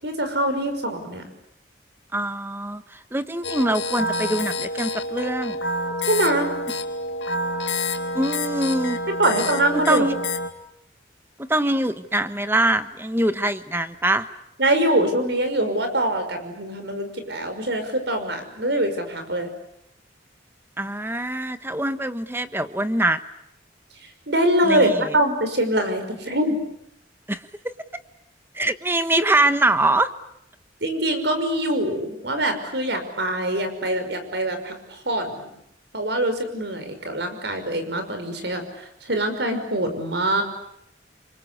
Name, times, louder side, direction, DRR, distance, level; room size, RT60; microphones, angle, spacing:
voice 1, 0.0-1.2 6.1-6.5 9.2-10.1 14.6-19.5 24.3-26.6 30.8-35.5 35.9-38.6 39.1-40.4, right 1 dB, 65° right, 7 dB, 5.9 m, -23 dB
voice 2, 2.1-2.8 3.1-5.6 8.1-9.0 9.7-10.1 11.5-14.3 20.8-23.2 24.6-25.1 27.3-27.4 27.6-27.7 28.5-30.1, right 1 dB, 10° right, 11 dB, 1.3 m, -23 dB
sound 1, 3.4-10.5, left 1 dB, 75° left, 2.4 m, -28 dB
28.5 x 25.0 x 8.3 m, 0.77 s
head